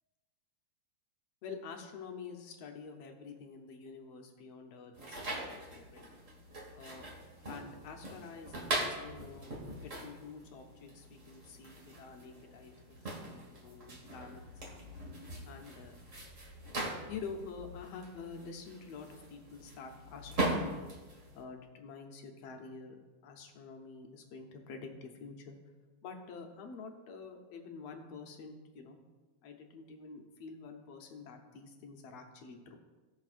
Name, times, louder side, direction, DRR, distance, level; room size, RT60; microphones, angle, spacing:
voice 1, 1.4-6.1 6.8-7.1 7.5-9.5 9.8-14.4 15.4-16.0 17.1-20.9 21.3-25.6 26.0-29.0 29.4-32.8, left 5 dB, 70° left, 3 dB, 1.8 m, -48 dB
sound 1, 4.9-21.4, right 1 dB, 35° right, 1.5 m, -41 dB
18.0 x 6.1 x 2.5 m, 1.2 s
omnidirectional pair, 3.4 m